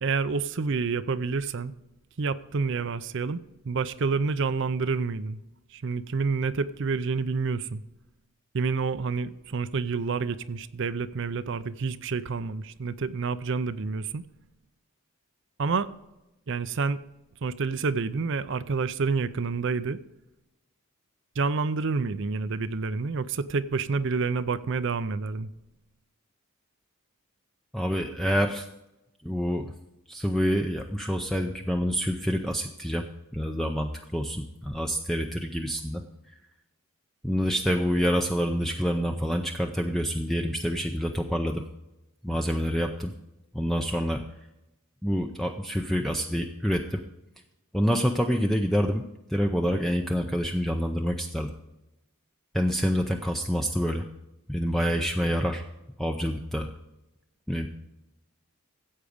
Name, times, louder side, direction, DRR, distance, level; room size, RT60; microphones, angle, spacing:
voice 1, 0.0-1.7 2.2-5.4 5.7-7.8 8.5-14.2 15.6-15.9 16.5-17.0 17.4-20.0 21.4-25.5, right 4 dB, 55° right, 0.5 m, -28 dB
voice 2, 27.7-28.7 29.2-29.7 30.1-33.1 33.3-36.0 37.2-41.6 42.2-43.1 43.5-44.2 45.0-47.0 47.7-51.5 52.5-54.0 54.5-55.6 56.0-56.7 57.5-57.7, equal, ahead, 0.5 m, -27 dB
14.5 x 8.2 x 5.0 m
head